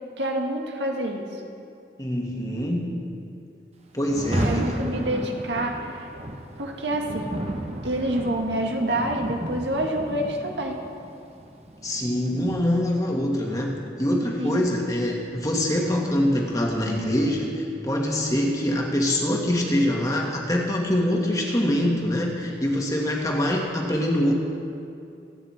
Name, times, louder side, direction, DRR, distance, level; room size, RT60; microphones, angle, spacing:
voice 1, 0.2-1.3 4.4-6.1 6.6-7.3 7.8-10.8 14.4-14.6, right 1 dB, 85° right, 1 dB, 1.9 m, -27 dB
voice 2, 2.0-3.0 3.9-4.8 11.8-13.7 14.0-24.3, left 1 dB, 20° left, -1 dB, 1.7 m, -24 dB
Rain, 4.0-13.1, right 1 dB, 35° right, 1.1 m, -33 dB
25.5 x 9.4 x 4.4 m, 2.5 s
head